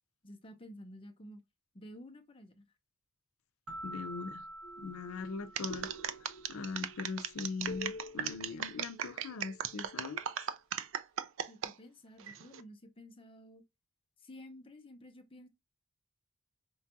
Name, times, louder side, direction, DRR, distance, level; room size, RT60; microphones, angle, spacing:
voice 1, 0.2-1.4 1.7-2.7 11.5-13.6 14.2-15.5, equal, 25° left, 0.6 m, -52 dB
sound 1, 3.7-6.4, right 1 dB, 80° right, 1.3 m, -47 dB
voice 2, 3.8-4.5 4.8-5.9 6.5-10.2, left 4 dB, 80° left, 0.5 m, -41 dB
sound 2, 4.6-10.2, left 1 dB, 55° left, 0.8 m, -48 dB
sound 3, 5.5-11.7 12.2-12.6, right 8 dB, 65° right, 0.4 m, -37 dB
5.2 x 2.3 x 2.7 m
head